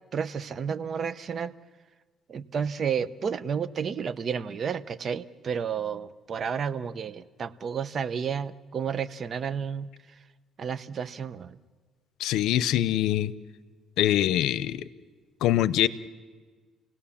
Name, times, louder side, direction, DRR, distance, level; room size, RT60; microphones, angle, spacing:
voice 1, 0.1-1.5 2.3-9.9 10.6-11.6, right 7 dB, 45° right, 16 dB, 0.7 m, -31 dB
voice 2, 12.2-13.3 14.0-14.8 15.4-15.9, left 12 dB, 85° left, 17 dB, 0.6 m, -23 dB
30.0 x 17.5 x 7.2 m, 1.5 s
cardioid pair, 105°, 0 cm